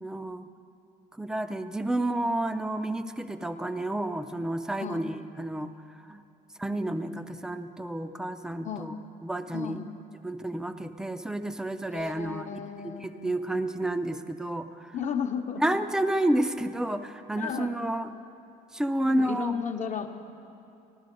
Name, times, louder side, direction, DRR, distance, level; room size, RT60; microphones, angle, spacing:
voice 1, 0.0-0.5 1.2-5.7 6.1-6.2 6.6-8.9 9.2-9.8 10.2-12.6 12.8-14.9 15.6-18.1 18.7-19.5, right 1 dB, 5° right, 9 dB, 0.5 m, -30 dB
voice 2, 8.6-8.9 9.5-9.9 11.9-13.6 14.9-15.6 17.3-17.7 19.0-20.1, left 7 dB, 45° left, 4 dB, 1.0 m, -34 dB
15.0 x 12.0 x 5.3 m, 2.8 s
cardioid pair, 110°, 17 cm